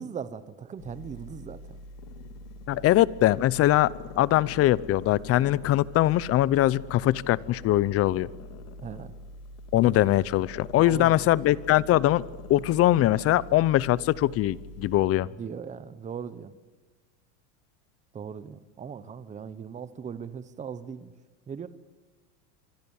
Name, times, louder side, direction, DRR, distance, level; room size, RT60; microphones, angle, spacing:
voice 1, 0.0-1.8 2.7-2.9 8.8-9.2 10.8-11.2 15.4-16.5 18.1-21.1 21.5-21.7, right 7 dB, 15° right, 14 dB, 1.0 m, -39 dB
sound 1, 0.8-15.1, equal, 75° left, 7.5 m, -45 dB
Growling, 1.0-2.8 3.2-6.2 6.6-13.4 13.7-13.8, left 10 dB, 50° left, 2.9 m, -46 dB
voice 2, 2.7-8.3 9.7-12.2 12.5-15.3, left 14 dB, 35° left, 21 dB, 0.7 m, -22 dB
25.5 x 25.0 x 7.2 m, 1.3 s
supercardioid pair, 130°, 44 cm